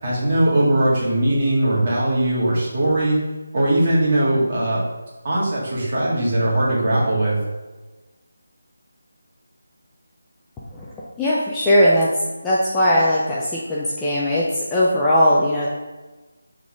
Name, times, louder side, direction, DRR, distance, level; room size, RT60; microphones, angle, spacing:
voice 1, 0.0-3.2 3.5-4.8 5.2-7.4, right 1 dB, 30° right, -6 dB, 1.9 m, -20 dB
voice 2, 11.2-12.1 12.4-15.7, equal, 5° left, -7 dB, 0.4 m, -19 dB
5.7 x 3.8 x 4.8 m, 1.2 s
figure-of-eight pair, 175°, 0 cm